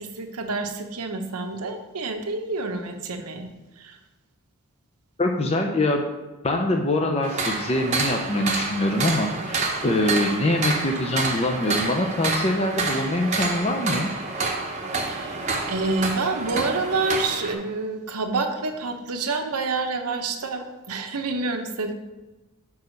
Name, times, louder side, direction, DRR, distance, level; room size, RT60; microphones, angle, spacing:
voice 1, 0.0-3.5 3.8-4.0 15.1-15.4 15.7-21.9, right 3 dB, 90° right, 5 dB, 0.8 m, -28 dB
voice 2, 5.2-6.0 6.4-14.1, left 1 dB, 25° left, 3 dB, 0.5 m, -24 dB
sound 1, 7.2-17.5, right 3 dB, 30° right, 0.8 m, -28 dB
5.3 x 4.8 x 6.3 m, 1.1 s
head